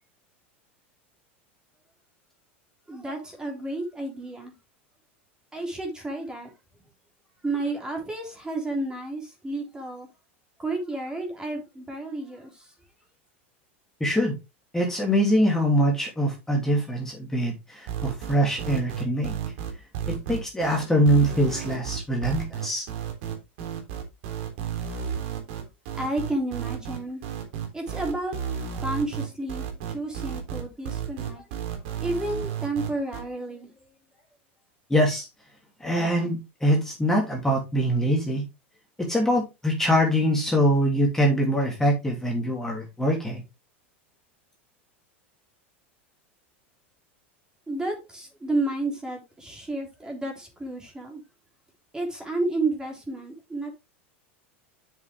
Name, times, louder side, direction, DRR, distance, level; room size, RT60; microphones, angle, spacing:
voice 1, 2.9-4.5 5.5-6.5 7.4-10.1 10.6-12.7 25.9-27.2 27.7-28.3 28.8-31.4 32.0-33.9 47.7-51.2 51.9-53.7, right 2 dB, 10° right, 3.4 m, -31 dB
voice 2, 14.0-14.4 14.7-19.3 20.1-22.8 34.9-35.3 35.8-38.4 39.0-43.4, equal, 5° left, 3.1 m, -23 dB
sound 1, 17.9-33.2, right 8 dB, 65° right, 3.6 m, -32 dB
7.9 x 7.1 x 3.6 m
supercardioid pair, 115°, 7 cm